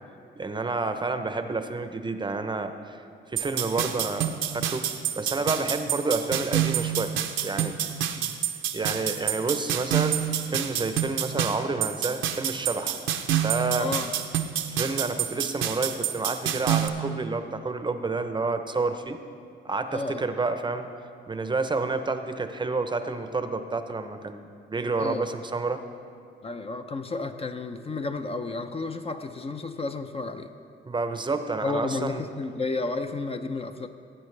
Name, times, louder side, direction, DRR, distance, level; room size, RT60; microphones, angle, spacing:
voice 1, 0.4-3.0 3.3-4.9 5.2-7.1 7.4-7.8 8.7-13.0 13.4-13.9 14.7-19.2 19.6-20.9 21.3-25.8 30.9-32.2, right 3 dB, 25° right, 8 dB, 0.7 m, -29 dB
sound 1, 3.4-16.9, right 10 dB, 80° right, 0.8 m, -28 dB
voice 2, 13.8-14.1 19.9-20.2 25.0-25.3 26.4-30.5 31.6-33.9, left 3 dB, 30° left, 7 dB, 0.5 m, -32 dB
17.0 x 8.6 x 3.3 m, 2.4 s
cardioid pair, 90°, 20 cm